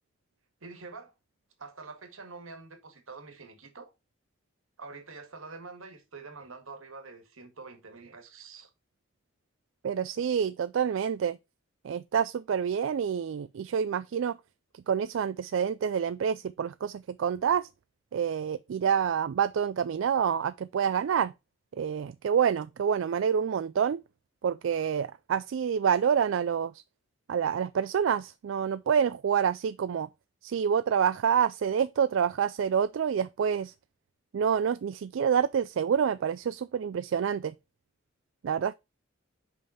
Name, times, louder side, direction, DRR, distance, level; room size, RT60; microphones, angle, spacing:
voice 1, 0.6-1.1 1.6-3.9 4.8-8.7, right 4 dB, 85° right, 1.7 m, -46 dB
voice 2, 9.8-11.4 11.8-14.4 14.7-17.7 18.1-21.3 21.8-24.0 24.4-26.8 27.3-30.1 30.4-33.7 34.3-37.5 38.4-38.7, right 7 dB, 70° right, 0.3 m, -27 dB
5.4 x 5.2 x 5.5 m
head